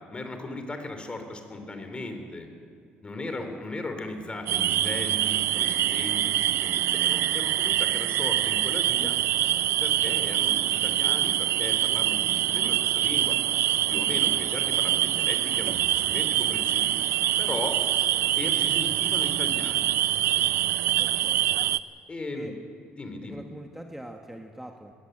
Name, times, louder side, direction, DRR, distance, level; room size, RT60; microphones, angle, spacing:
voice 1, 0.1-2.5 3.0-9.2 9.8-13.4 13.9-17.0 17.4-17.8 18.4-20.0 22.1-22.5 23.0-23.4, left 2 dB, 25° left, 6 dB, 3.5 m, -37 dB
voice 2, 3.2-3.6 21.0-21.5 22.3-22.5 23.2-24.9, right 1 dB, 5° right, 3 dB, 1.5 m, -42 dB
sound 1, 4.5-21.8, right 12 dB, 75° right, 0.5 m, -25 dB
21.0 x 17.5 x 8.0 m, 2.2 s
cardioid pair, 85°, 4 cm